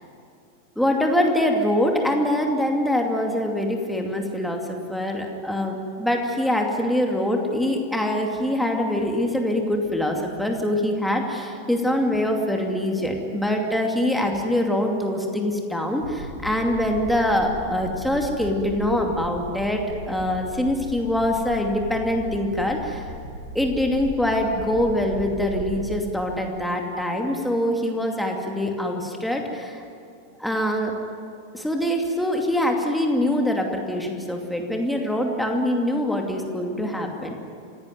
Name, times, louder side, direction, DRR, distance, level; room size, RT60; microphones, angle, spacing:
voice 1, 0.8-23.1 23.5-29.8 30.4-30.9 31.5-37.4, left 1 dB, ahead, 2 dB, 2.6 m, -24 dB
sound 1, 16.0-25.9, right 1 dB, 90° left, 6.3 m, -37 dB
26.5 x 17.5 x 9.6 m, 2.4 s
figure-of-eight pair, 90°, 0 cm